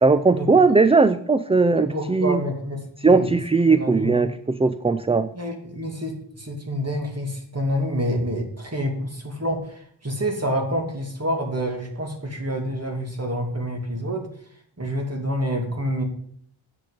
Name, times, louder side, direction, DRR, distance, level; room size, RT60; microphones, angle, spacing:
voice 1, 0.0-2.4 3.0-5.3, right 4 dB, 15° right, 12 dB, 0.4 m, -18 dB
voice 2, 1.7-3.3 3.6-4.2 5.3-14.3 14.8-16.0, equal, 30° right, 2 dB, 2.5 m, -28 dB
9.0 x 5.8 x 8.2 m, 0.64 s
wide cardioid pair, 95°, 47 cm